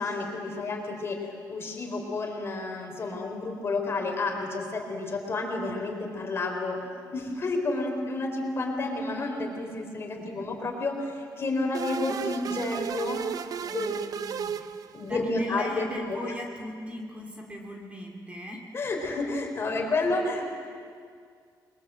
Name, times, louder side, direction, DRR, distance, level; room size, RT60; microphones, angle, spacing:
voice 1, 0.0-13.2 13.6-14.5 14.9-16.2 18.7-20.5, left 2 dB, 35° left, 2 dB, 4.1 m, -31 dB
voice 2, 10.2-10.5 14.6-14.8 15.0-18.7, equal, 15° right, 0 dB, 2.7 m, -38 dB
sound 1, 11.7-15.3, right 8 dB, 55° right, 0.8 m, -34 dB
29.0 x 22.0 x 7.8 m, 2.2 s
wide cardioid pair, 165°, 7 cm